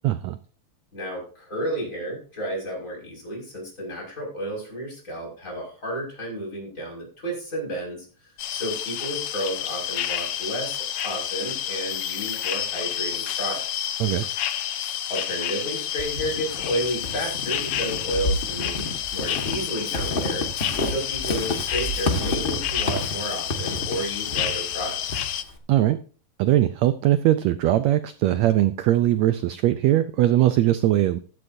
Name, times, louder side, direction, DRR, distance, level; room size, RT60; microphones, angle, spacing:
voice 1, 0.0-0.4 14.0-14.2 25.7-26.0 26.4-31.2, right 13 dB, 85° right, 12 dB, 1.5 m, -20 dB
voice 2, 0.9-8.1 8.5-13.9 15.1-18.8 19.1-20.4 20.8-25.3, right 1 dB, 20° left, -2 dB, 6.1 m, -32 dB
sound 1, 8.4-25.4, left 11 dB, 85° left, 1.3 m, -29 dB
Walk footsteps / Squeak, 16.0-25.6, left 1 dB, 45° left, 0.6 m, -30 dB
15.0 x 12.0 x 2.7 m, 0.39 s
omnidirectional pair, 3.8 m